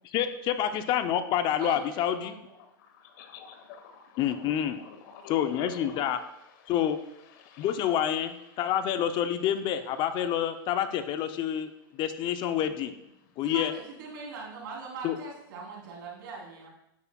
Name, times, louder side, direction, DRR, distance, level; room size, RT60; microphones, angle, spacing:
voice 1, 0.0-2.3 4.2-4.8 5.3-6.2 6.7-7.0 7.6-8.3 8.6-11.7 12.0-12.9 13.4-13.7 15.0-15.1, left 10 dB, 40° left, 10 dB, 0.6 m, -28 dB
voice 2, 1.6-2.5 13.4-16.7, right 5 dB, 70° right, -2 dB, 3.3 m, -41 dB
voice 3, 2.8-6.1 6.6-6.7 7.4-7.7, left 4 dB, 60° left, 7 dB, 1.2 m, -46 dB
9.3 x 8.1 x 2.3 m, 0.83 s
hypercardioid pair, 120°, 12 cm